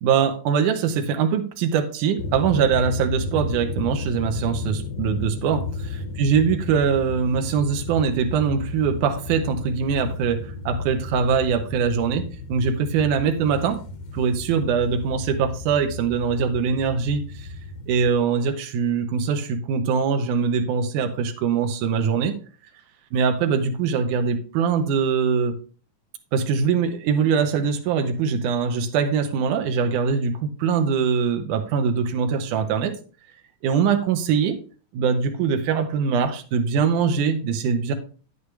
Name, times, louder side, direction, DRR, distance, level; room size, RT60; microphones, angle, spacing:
voice 1, 0.0-5.7 6.2-13.8 14.1-17.5 17.9-22.4 23.1-25.5 26.3-33.0 33.6-34.6 34.9-37.9, right 6 dB, 70° right, 5 dB, 2.5 m, -22 dB
sound 1, 2.2-18.1, left 3 dB, 80° left, 2.8 m, -33 dB
9.5 x 8.3 x 3.2 m, 0.36 s
omnidirectional pair, 3.8 m